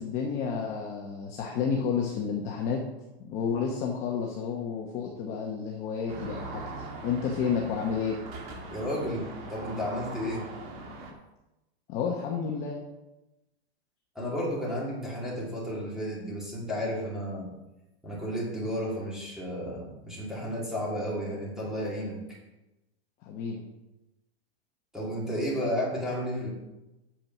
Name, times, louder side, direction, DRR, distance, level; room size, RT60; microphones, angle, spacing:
voice 1, 0.0-2.8 3.2-8.2 11.9-12.8 23.2-23.6, left 6 dB, 20° left, 0 dB, 0.9 m, -31 dB
sound 1, 6.1-11.1, right 3 dB, 30° right, 1.7 m, -41 dB
voice 2, 8.7-10.5 14.1-17.5 18.0-22.4 24.9-26.5, equal, ahead, -6 dB, 2.6 m, -32 dB
8.8 x 6.9 x 6.1 m, 0.98 s
supercardioid pair, 165°, 33 cm